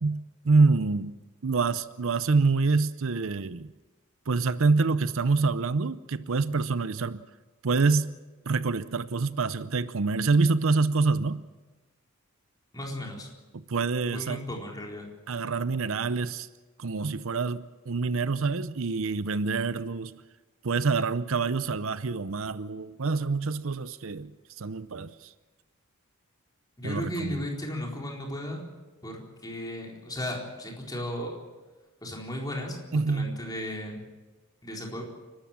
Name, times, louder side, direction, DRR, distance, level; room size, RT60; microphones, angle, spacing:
voice 1, 0.0-1.2 1.4-3.7 4.3-7.2 7.6-8.1 8.5-11.4 13.5-14.4 15.3-16.5 16.8-20.1 20.6-24.3 24.6-25.3 26.8-27.4 32.9-33.4, right 4 dB, 65° right, 0.6 m, -26 dB
voice 2, 12.7-13.3 14.1-15.1 26.8-28.6 29.0-31.4 32.0-32.8 33.1-34.0 34.6-35.0, left 1 dB, 20° left, 4.2 m, -35 dB
30.0 x 13.0 x 7.5 m
head